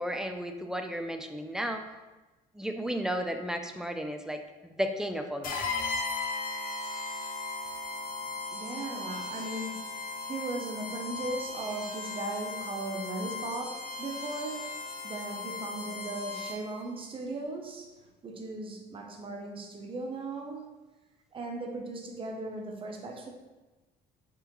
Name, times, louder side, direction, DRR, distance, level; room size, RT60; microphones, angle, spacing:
voice 1, 0.0-1.8 2.5-5.7, equal, 5° right, 5 dB, 0.3 m, -33 dB
sound 1, 5.4-16.8, left 3 dB, 55° left, 0.7 m, -37 dB
voice 2, 8.5-14.8 15.0-17.9 18.2-20.7 21.3-23.3, right 2 dB, 30° right, 2 dB, 0.7 m, -37 dB
3.7 x 3.3 x 3.0 m, 1.1 s
cardioid pair, 110°, 17 cm